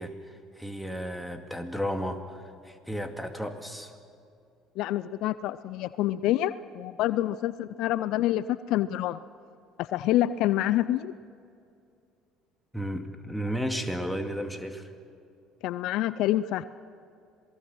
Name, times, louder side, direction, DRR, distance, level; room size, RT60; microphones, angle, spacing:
voice 1, 0.0-3.9 12.7-14.9, equal, ahead, 5 dB, 2.3 m, -33 dB
voice 2, 4.8-9.2 9.8-11.1 15.6-16.6, left 14 dB, 65° left, 16 dB, 0.4 m, -27 dB
27.0 x 19.5 x 6.2 m, 2.5 s
hypercardioid pair, 60°, 0 cm